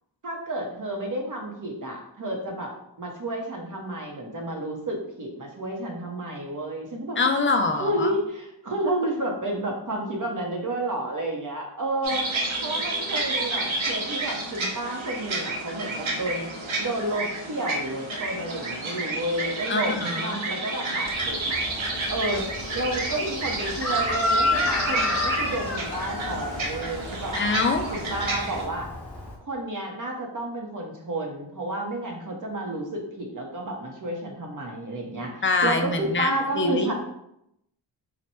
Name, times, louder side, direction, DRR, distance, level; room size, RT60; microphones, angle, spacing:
voice 1, 0.2-7.2 7.8-16.5 16.8-21.6 22.1-22.4 22.7-27.4 27.9-28.9 29.5-36.9, right 1 dB, 40° right, 1 dB, 0.9 m, -31 dB
voice 2, 7.2-8.1 19.7-20.4 27.3-27.9 35.4-36.9, left 3 dB, 25° left, 5 dB, 0.4 m, -24 dB
sound 1, 12.0-28.6, right 2 dB, 85° right, 0.9 m, -30 dB
Chicken rooster, 21.1-29.3, left 1 dB, 5° left, 1.0 m, -30 dB
4.1 x 2.1 x 4.3 m, 0.80 s
wide cardioid pair, 115°, 47 cm